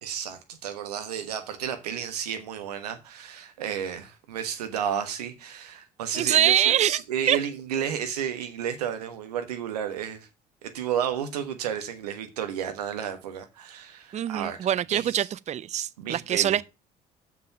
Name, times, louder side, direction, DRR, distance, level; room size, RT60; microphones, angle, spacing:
voice 1, 0.0-10.3 10.6-14.6 14.9-15.3 16.0-16.6, right 8 dB, 80° right, 1.3 m, -32 dB
voice 2, 6.1-7.0 7.3-7.4 14.1-16.6, right 11 dB, 35° right, 0.5 m, -24 dB
6.9 x 6.1 x 7.0 m
hypercardioid pair, 55°, 20 cm